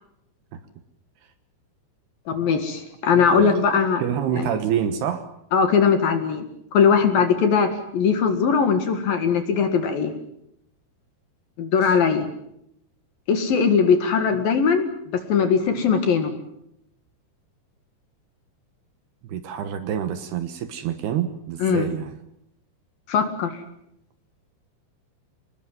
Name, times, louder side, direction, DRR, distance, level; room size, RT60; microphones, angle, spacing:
voice 1, 2.3-4.0 4.3-4.5 5.5-6.5 6.7-10.1 11.6-12.2 13.3-16.3 21.6-21.9 23.1-23.5, left 6 dB, 60° left, 7 dB, 3.1 m, -20 dB
voice 2, 4.0-5.3 11.8-12.0 19.2-22.2, right 9 dB, 70° right, 10 dB, 2.8 m, -27 dB
25.5 x 21.0 x 7.5 m, 0.76 s
omnidirectional pair, 5.5 m